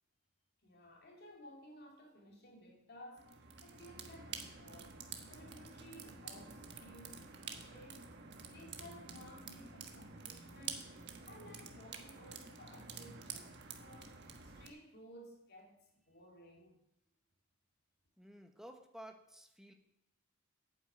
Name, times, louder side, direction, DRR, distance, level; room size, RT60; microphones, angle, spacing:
voice 1, 0.6-10.9 11.3-15.8 16.0-16.8, equal, 50° left, 0 dB, 2.7 m, -57 dB
sound 1, 3.2-14.7, right 6 dB, 55° right, 1.3 m, -49 dB
voice 2, 18.2-19.7, equal, ahead, 4 dB, 1.1 m, -53 dB
8.9 x 8.8 x 7.9 m, 0.81 s
head